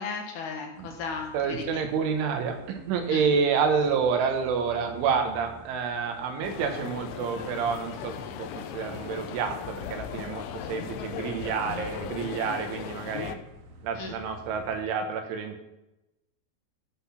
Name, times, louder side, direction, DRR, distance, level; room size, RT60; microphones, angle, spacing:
voice 1, 0.0-1.8 3.1-3.3 13.9-14.1, left 5 dB, 65° left, 2 dB, 3.3 m, -35 dB
sound 1, 0.7-14.8, right 1 dB, 70° right, 3.7 m, -51 dB
voice 2, 1.3-13.4 13.8-15.7, right 6 dB, 85° right, 5 dB, 3.9 m, -29 dB
sound 2, 6.4-13.4, left 10 dB, 85° left, 3.1 m, -38 dB
15.0 x 6.1 x 5.9 m, 0.93 s
omnidirectional pair, 5.3 m